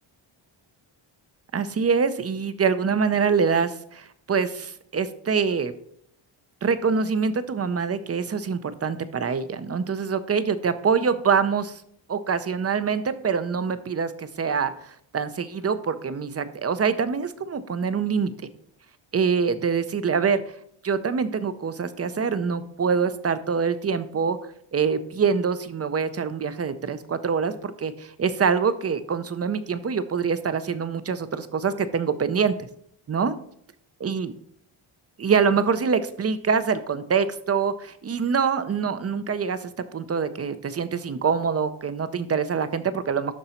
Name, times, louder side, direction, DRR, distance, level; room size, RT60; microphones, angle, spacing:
voice 1, 1.5-5.7 6.6-11.8 12.1-18.3 19.1-20.4 20.8-24.4 24.7-32.6 33.1-33.3 34.0-34.3 35.2-43.3, right 6 dB, 30° right, 13 dB, 0.5 m, -25 dB
11.5 x 3.9 x 4.3 m, 0.69 s
wide cardioid pair, 135°, 49 cm